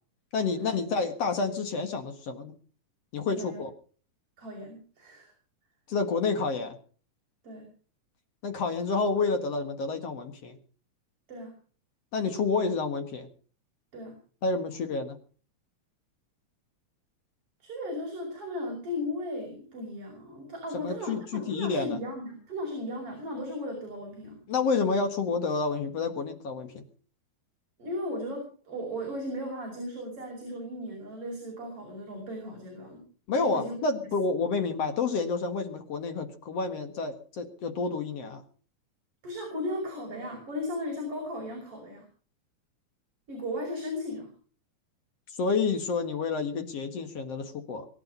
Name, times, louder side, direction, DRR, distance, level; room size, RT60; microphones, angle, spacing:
voice 1, 0.3-2.5 3.1-3.7 5.9-6.8 8.4-10.6 12.1-13.3 14.4-15.2 20.7-22.0 24.5-26.8 33.3-38.4 45.4-47.9, left 4 dB, 55° left, 7 dB, 2.4 m, -29 dB
voice 2, 4.4-5.3 7.4-7.7 11.3-11.6 13.9-14.2 17.6-24.4 27.8-33.0 33.3-33.7 39.2-42.1 43.3-44.3, left 1 dB, 40° right, 0 dB, 6.4 m, -36 dB
23.5 x 10.5 x 5.3 m, 0.43 s
omnidirectional pair, 3.8 m